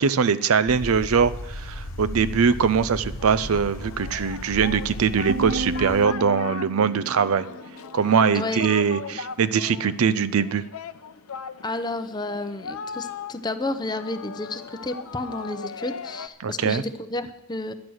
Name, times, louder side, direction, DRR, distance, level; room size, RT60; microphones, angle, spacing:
voice 1, 0.0-7.5 7.9-10.6 16.4-16.8, right 6 dB, 80° right, 15 dB, 0.5 m, -22 dB
sound 1, 0.7-6.1, left 1 dB, 65° left, 1.1 m, -35 dB
Singing, 3.2-16.3, left 5 dB, 85° left, 0.6 m, -39 dB
sound 2, 5.3-8.3, right 2 dB, 50° right, 0.9 m, -34 dB
voice 2, 11.6-17.7, left 2 dB, 20° left, 9 dB, 0.6 m, -31 dB
11.0 x 10.5 x 6.3 m, 0.90 s
head